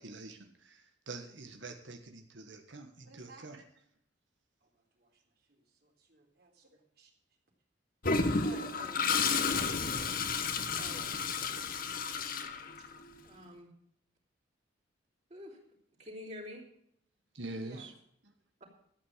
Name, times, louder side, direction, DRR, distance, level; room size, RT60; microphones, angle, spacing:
voice 1, 0.0-3.6 17.3-17.9 18.2-18.3, right 2 dB, 75° right, 5 dB, 1.6 m, -45 dB
voice 2, 3.0-3.5 4.6-4.7 5.0-5.1 5.5-7.1 8.4-8.7 17.6-17.9, right 3 dB, 60° right, 1 dB, 3.8 m, -56 dB
Toilet flush, 8.0-13.1, left 4 dB, 50° left, 1.3 m, -32 dB
voice 3, 13.2-13.7 15.3-15.6 16.0-16.6, left 1 dB, 40° right, -3 dB, 4.1 m, -47 dB
13.5 x 8.6 x 7.5 m, 0.69 s
head